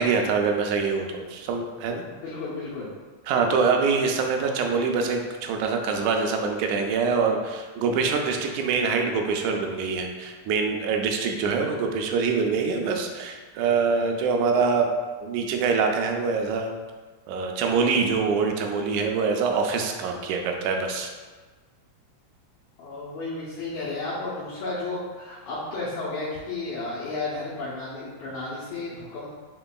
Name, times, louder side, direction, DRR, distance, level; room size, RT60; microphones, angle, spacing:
voice 1, 0.0-2.1 3.3-14.9 15.2-16.7 17.3-21.1, right 5 dB, 85° right, 3 dB, 1.9 m, -24 dB
voice 2, 2.1-2.9 22.8-29.3, left 3 dB, 75° left, -9 dB, 2.0 m, -33 dB
5.1 x 3.8 x 2.2 m, 1.4 s
omnidirectional pair, 3.3 m